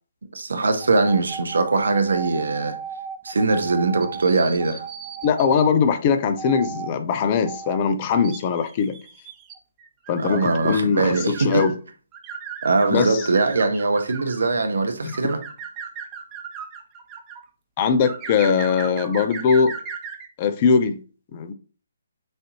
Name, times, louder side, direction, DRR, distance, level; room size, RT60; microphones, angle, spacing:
voice 1, 0.3-2.8 3.2-4.9 10.2-11.6 12.6-15.4, right 3 dB, 65° right, 0.8 m, -21 dB
sound 1, 0.8-5.7 6.4-6.9 7.4-7.8 8.1-11.7 12.1-14.5 15.1-17.4 18.0-20.3, right 7 dB, 20° right, 0.8 m, -36 dB
voice 2, 5.2-8.9 10.1-11.7 12.9-13.2 15.0-15.2 17.8-19.7 20.4-21.0 21.3-21.5, left 6 dB, 30° left, 0.5 m, -21 dB
6.2 x 2.6 x 2.9 m
figure-of-eight pair, 140°, 0 cm